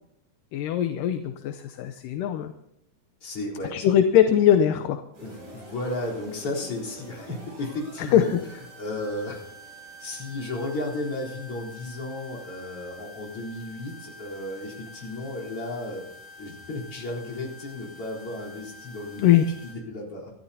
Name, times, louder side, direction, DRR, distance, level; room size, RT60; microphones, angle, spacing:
voice 1, 0.5-2.5 3.7-5.0 8.0-8.4 19.2-19.4, left 10 dB, 80° left, 8 dB, 2.3 m, -21 dB
voice 2, 3.2-3.9 5.2-8.3 8.8-9.5 10.0-16.1 16.4-19.2 19.6-20.3, left 2 dB, 40° left, -5 dB, 4.6 m, -34 dB
sound 1, 5.1-19.7, left 1 dB, 75° right, 8.8 m, -46 dB
28.5 x 13.0 x 2.8 m, 0.78 s
omnidirectional pair, 3.9 m